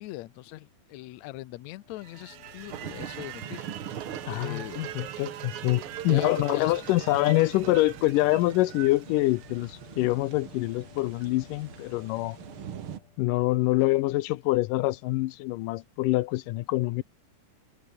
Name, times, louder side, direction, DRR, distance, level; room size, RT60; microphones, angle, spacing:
voice 1, 0.0-3.7 4.3-4.9 6.1-6.8, left 17 dB, 70° left, 1.9 m, -41 dB
sound 1, 1.7-13.6, left 6 dB, 45° left, 3.2 m, -52 dB
sound 2, 2.0-10.1, right 12 dB, 70° right, 2.5 m, -41 dB
sound 3, 2.7-13.0, right 9 dB, 55° right, 1.8 m, -43 dB
voice 2, 4.3-12.4 13.2-17.0, left 18 dB, 85° left, 2.3 m, -25 dB
omnidirectional pair, 3.7 m